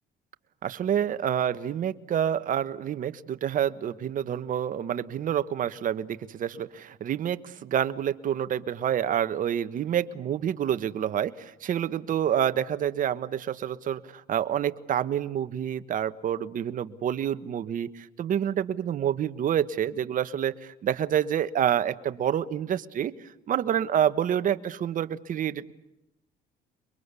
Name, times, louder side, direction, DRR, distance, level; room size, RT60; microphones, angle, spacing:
voice 1, 0.6-23.1 23.5-25.7, right 9 dB, 50° right, 11 dB, 1.4 m, -28 dB
29.0 x 23.0 x 8.4 m, 0.87 s
cardioid pair, 110°, 17 cm